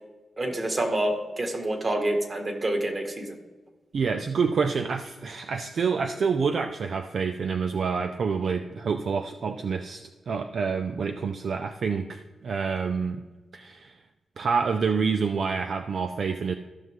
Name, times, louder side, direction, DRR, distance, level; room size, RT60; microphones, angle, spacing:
voice 1, 0.4-3.4, right 1 dB, 40° right, 4 dB, 1.9 m, -27 dB
voice 2, 3.9-13.2 13.5-14.0 14.4-16.5, right 5 dB, 65° right, 6 dB, 0.5 m, -27 dB
15.0 x 6.0 x 3.7 m, 1.2 s
cardioid pair, 65°, 0 cm